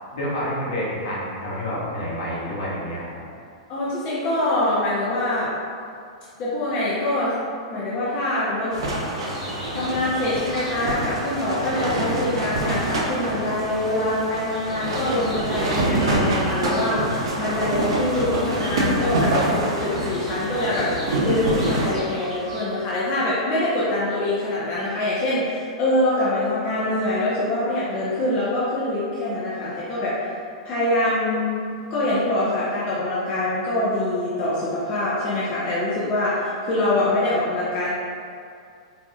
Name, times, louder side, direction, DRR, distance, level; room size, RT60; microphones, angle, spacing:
voice 1, 0.1-3.2, equal, 65° left, -7 dB, 1.1 m, -28 dB
voice 2, 3.7-5.5 6.4-7.4 7.7-8.7 9.7-30.3 30.6-37.9, left 1 dB, 40° left, -9 dB, 0.7 m, -24 dB
sound 1, 8.7-21.9, right 1 dB, 70° right, 0.7 m, -26 dB
sound 2, 9.1-22.6, left 1 dB, ahead, 1.2 m, -40 dB
4.1 x 2.4 x 2.3 m, 2.3 s
hypercardioid pair, 105°, 3 cm